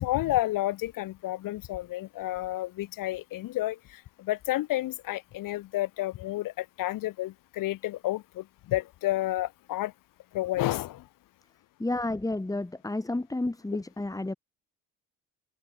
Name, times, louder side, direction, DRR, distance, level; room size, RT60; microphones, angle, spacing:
voice 1, 0.0-9.9 10.3-11.0, left 16 dB, 70° left, 4.7 m, -31 dB
voice 2, 11.8-14.3, left 2 dB, 10° left, 4.2 m, -31 dB
cardioid pair, 100°, 34 cm